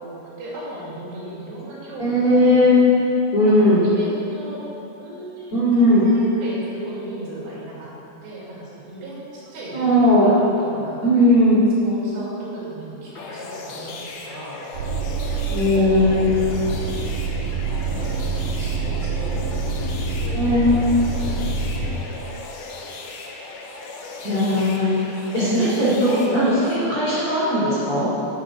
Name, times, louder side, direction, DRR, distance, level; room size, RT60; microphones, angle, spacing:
voice 1, 0.0-2.7 3.5-4.7 5.0-11.1 11.8-13.9 14.2-14.6 15.2-17.0 17.4-19.4 20.2-22.0 24.4-24.8 25.6-25.8, right 2 dB, 65° right, -7 dB, 4.5 m, -37 dB
voice 2, 2.0-2.8 3.3-3.9 5.5-6.0 9.7-10.3 11.0-11.6 15.5-16.2 20.3-20.8 24.2-25.1 25.3-28.1, left 1 dB, 35° left, -11 dB, 3.0 m, -18 dB
sound 1, 13.1-26.8, left 3 dB, 70° left, 2.5 m, -37 dB
sound 2, 14.7-21.9, right 3 dB, 50° right, 4.2 m, -26 dB
12.0 x 7.2 x 6.2 m, 2.9 s
omnidirectional pair, 5.5 m